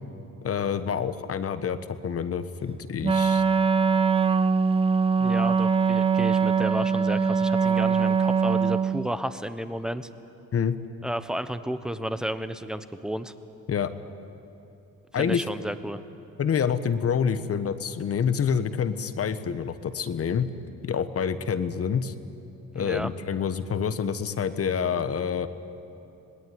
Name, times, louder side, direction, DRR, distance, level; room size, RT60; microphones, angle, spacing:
voice 1, 0.4-1.8 2.0-3.4 10.5-10.8 13.7-13.9 15.1-15.5 16.4-20.5 20.8-22.1 22.7-25.5, left 7 dB, 50° left, 12 dB, 1.3 m, -27 dB
Wind instrument woodwind instrument, 3.0-9.1, right 6 dB, 20° right, 0.6 m, -22 dB
voice 2, 5.2-10.1 11.0-13.3 15.2-16.0 22.7-23.1, equal, ahead, 11 dB, 1.1 m, -32 dB
26.5 x 19.5 x 9.6 m, 2.8 s
cardioid pair, 90°, 30 cm